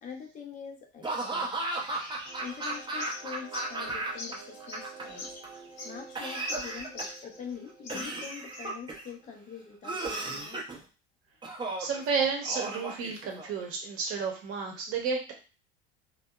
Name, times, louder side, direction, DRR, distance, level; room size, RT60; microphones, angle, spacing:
voice 1, 0.0-1.5 2.4-5.3 5.8-10.6, left 7 dB, 25° left, 2 dB, 0.6 m, -44 dB
Laughter / Cough, 1.0-4.3 4.6-5.5 6.2-7.3 7.9-9.1 9.8-10.8 11.4-12.0 12.4-13.6, right 2 dB, 15° right, 0.6 m, -35 dB
sound 1, 1.9-7.5 7.8-8.7, left 3 dB, 65° left, 0.7 m, -44 dB
voice 2, 2.0-2.4 11.8-15.3, right 5 dB, 45° right, 2 dB, 0.9 m, -32 dB
sound 2, 2.2-9.7 10.0-10.1 10.3-10.4, right 6 dB, 85° right, 0.6 m, -50 dB
2.7 x 2.2 x 2.2 m, 0.33 s
figure-of-eight pair, 75°, 32 cm